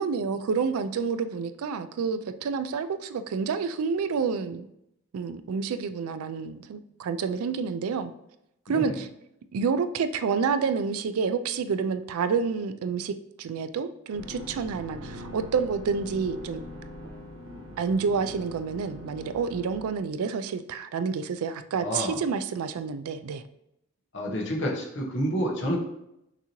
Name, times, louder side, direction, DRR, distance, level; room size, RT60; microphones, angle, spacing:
voice 1, 0.0-4.7 5.1-8.1 8.7-9.1 9.5-16.6 17.8-23.4, right 5 dB, 90° right, 11 dB, 0.4 m, -29 dB
voice 2, 8.7-9.0 21.8-22.2 24.1-25.8, equal, 55° left, -1 dB, 1.0 m, -29 dB
sound 1, 14.1-19.8, equal, 65° right, 1.0 m, -42 dB
5.9 x 2.8 x 2.9 m, 0.82 s
head